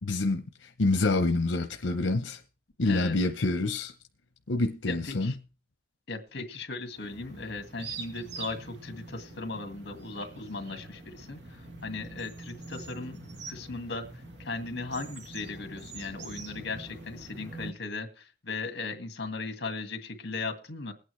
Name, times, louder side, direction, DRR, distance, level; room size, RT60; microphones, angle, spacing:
voice 1, 0.0-2.4 2.8-3.9 4.5-5.3, left 2 dB, 90° left, 0.8 m, -27 dB
voice 2, 2.8-3.2 4.9-5.3 6.1-13.2 13.5-14.1 14.4-20.9, left 3 dB, 60° left, 1.9 m, -37 dB
sound 1, 6.9-17.7, right 3 dB, 65° right, 1.7 m, -44 dB
21.0 x 9.0 x 3.2 m
head